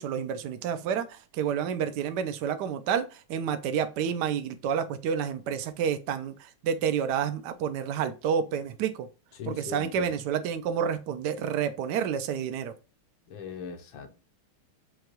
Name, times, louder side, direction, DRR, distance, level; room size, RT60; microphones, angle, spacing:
voice 1, 0.0-9.1 9.4-12.7, right 8 dB, 70° right, 1.0 m, -29 dB
voice 2, 9.4-10.2 13.3-14.2, left 6 dB, 70° left, 1.4 m, -40 dB
6.4 x 2.3 x 2.9 m
omnidirectional pair, 2.4 m